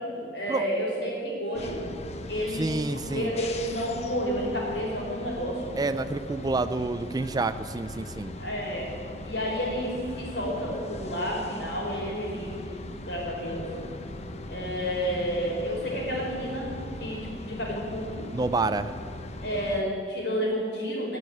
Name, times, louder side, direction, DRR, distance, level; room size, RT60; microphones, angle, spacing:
voice 1, 0.0-1.8 2.3-5.7 8.4-8.9 9.2-12.6 13.0-13.7 14.5-16.7 17.0-18.3 19.4-21.2, equal, 70° left, -2 dB, 4.6 m, -30 dB
sound 1, 1.5-19.8, left 2 dB, 40° left, 0.9 m, -39 dB
voice 2, 2.5-3.3 5.8-8.3 18.3-18.9, right 3 dB, 20° right, 12 dB, 0.4 m, -28 dB
16.0 x 6.7 x 9.6 m, 2.4 s
head